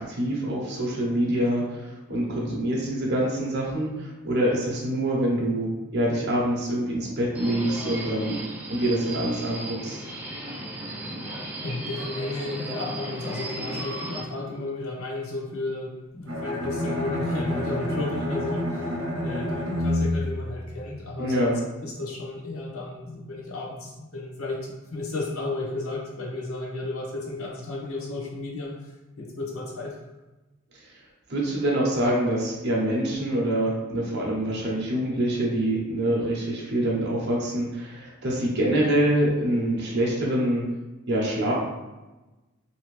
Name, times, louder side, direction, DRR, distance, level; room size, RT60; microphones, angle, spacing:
voice 1, 0.0-8.4 8.7-10.0 21.2-21.6 31.3-40.6 41.1-41.5, right 1 dB, 55° right, -4 dB, 0.8 m, -25 dB
Subway metro underground, 7.3-14.2, right 1 dB, 10° right, 0.5 m, -35 dB
voice 2, 11.6-30.0, left 2 dB, 90° left, -1 dB, 0.8 m, -33 dB
Bowed string instrument, 16.3-21.3, left 1 dB, 80° right, 0.9 m, -29 dB
2.9 x 2.7 x 3.1 m, 1.1 s
head